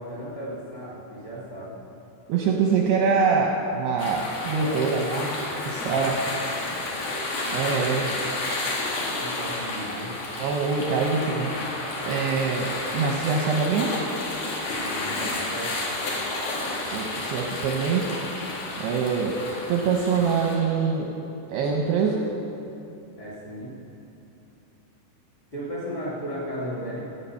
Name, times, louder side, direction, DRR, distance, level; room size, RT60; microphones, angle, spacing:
voice 1, 0.0-1.8 4.4-4.9 9.2-10.1 14.7-15.9 23.2-23.7 25.5-27.0, equal, 25° left, -6 dB, 2.4 m, -35 dB
voice 2, 2.3-5.3 5.6-6.2 7.5-8.1 10.4-11.5 12.0-13.9 16.9-18.1 18.8-19.4 19.7-21.1 21.5-22.2, right 5 dB, 75° right, 0 dB, 2.5 m, -24 dB
sound 1, 4.0-20.6, left 2 dB, 55° left, 3.0 m, -31 dB
16.0 x 8.8 x 5.7 m, 2.8 s
omnidirectional pair, 5.7 m